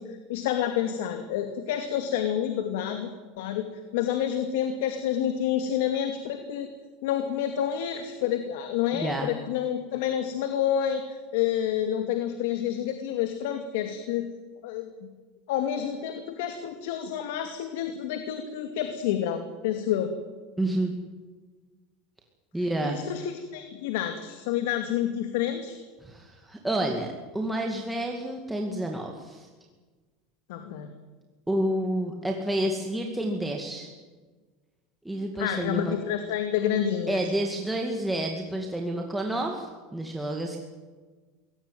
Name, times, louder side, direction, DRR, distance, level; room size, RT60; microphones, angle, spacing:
voice 1, 0.1-3.1 3.4-3.7 3.9-6.7 7.0-14.3 14.6-14.9 15.5-20.1 22.8-25.8 30.5-30.9 35.4-37.2, left 10 dB, 75° left, 7 dB, 2.5 m, -29 dB
voice 2, 8.9-9.3 20.6-20.9 22.5-23.0 26.0-29.5 31.5-33.9 35.0-35.9 37.1-40.6, right 1 dB, 5° right, 1 dB, 2.3 m, -29 dB
22.5 x 18.0 x 9.3 m, 1.4 s
supercardioid pair, 150°, 0 cm